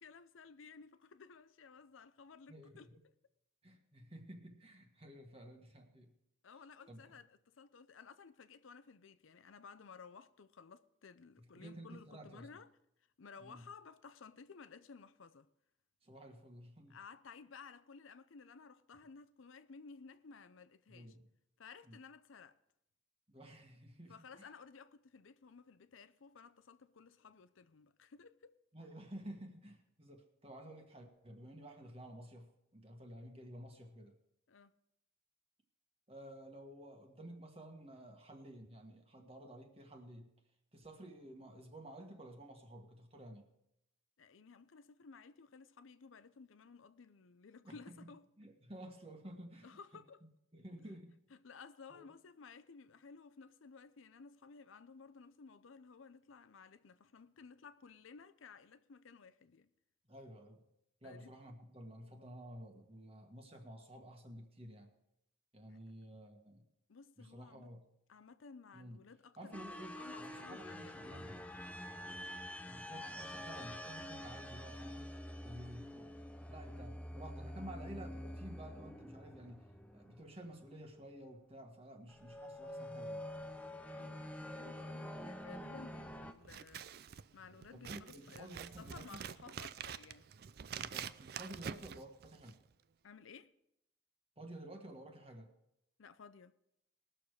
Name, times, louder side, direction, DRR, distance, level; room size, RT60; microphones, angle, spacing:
voice 1, 0.0-2.9 6.4-12.7 13.2-15.5 16.9-21.2 21.6-22.6 24.1-28.6 34.5-34.7 44.2-48.2 49.6-50.2 51.3-59.7 61.0-61.3 66.9-67.7 68.1-71.3 83.9-86.9 87.3-90.3 93.0-93.5 96.0-96.5, left 5 dB, 80° left, 0.6 m, -56 dB
voice 2, 2.5-3.0 3.6-6.1 6.9-7.1 11.4-12.5 13.4-13.7 16.0-17.0 20.9-21.3 21.8-22.0 23.3-24.5 28.7-34.2 36.1-40.3 40.7-43.5 47.6-48.1 48.4-49.7 50.5-51.2 51.9-52.0 60.1-60.6 61.0-64.9 65.5-66.6 67.2-67.8 68.7-69.0 69.4-71.4 72.7-75.1 75.4-76.2 76.5-83.2 87.7-89.3 90.8-92.6 94.4-95.5, right 1 dB, 30° right, 1.5 m, -52 dB
sound 1, 69.5-80.8 82.1-86.3, left 1 dB, 5° left, 0.5 m, -47 dB
Scissors, 86.4-92.7, right 7 dB, 50° right, 0.4 m, -47 dB
20.0 x 6.7 x 4.7 m
head